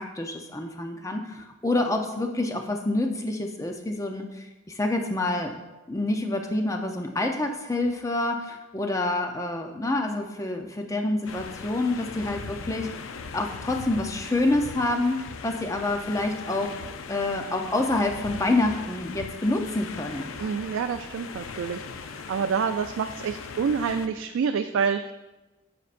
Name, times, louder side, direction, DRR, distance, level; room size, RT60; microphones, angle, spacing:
voice 1, 0.0-5.5 5.9-12.9 13.3-16.7 17.1-20.3, left 2 dB, 15° left, 4 dB, 0.5 m, -27 dB
sound 1, 11.3-24.1, left 5 dB, 90° left, 0.5 m, -39 dB
voice 2, 20.4-25.1, right 6 dB, 85° right, 7 dB, 0.3 m, -28 dB
9.4 x 6.7 x 2.5 m, 1.1 s
head